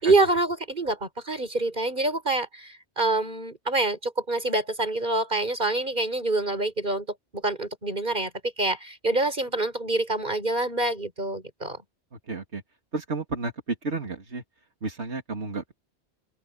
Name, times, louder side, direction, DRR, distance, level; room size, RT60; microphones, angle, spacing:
voice 1, 0.0-7.1 7.3-8.3 8.6-11.8, right 2 dB, 45° right, 5.3 m, -26 dB
voice 2, 12.3-12.6 12.9-13.5 13.8-14.4 14.8-15.8, right 3 dB, 85° right, 2.9 m, -32 dB
omnidirectional pair, 1.1 m